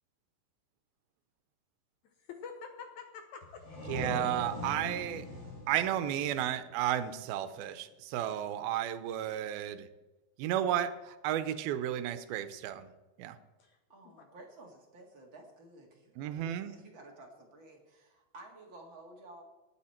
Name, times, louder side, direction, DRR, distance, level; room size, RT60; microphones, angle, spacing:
voice 1, 2.0-3.8 13.6-13.8 14.2-14.3, left 6 dB, 70° left, 5 dB, 1.9 m, -47 dB
sound 1, 3.4-7.0, left 1 dB, 35° left, 3.9 m, -41 dB
voice 2, 3.9-5.3 5.7-9.9 10.4-12.9 13.2-13.4 16.2-16.7, right 11 dB, 90° right, 12 dB, 2.6 m, -33 dB
voice 3, 13.9-19.4, right 2 dB, 40° right, 1 dB, 2.1 m, -53 dB
18.5 x 8.8 x 4.4 m, 1.1 s
omnidirectional pair, 4.2 m